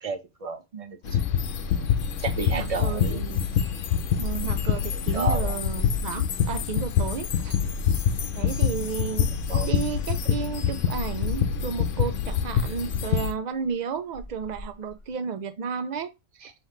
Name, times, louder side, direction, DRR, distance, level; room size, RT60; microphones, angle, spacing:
voice 1, 0.0-1.2 2.2-3.2 4.4-4.6 5.1-5.6 9.5-9.7, right 4 dB, 35° right, 0.7 m, -32 dB
sound 1, 1.0-13.3, left 8 dB, 80° left, 1.0 m, -26 dB
voice 2, 2.5-3.5 4.2-7.6 8.3-9.3 9.6-16.5, right 6 dB, 75° right, 0.4 m, -33 dB
sound 2, 4.2-6.7 6.9-7.7 8.0-8.1 8.3-9.2 9.6-9.7 10.4-10.5 11.0-11.6 12.0-13.0 13.5-13.7 14.1-15.1, left 1 dB, 25° left, 1.7 m, -39 dB
5.5 x 3.1 x 3.0 m
omnidirectional pair, 1.3 m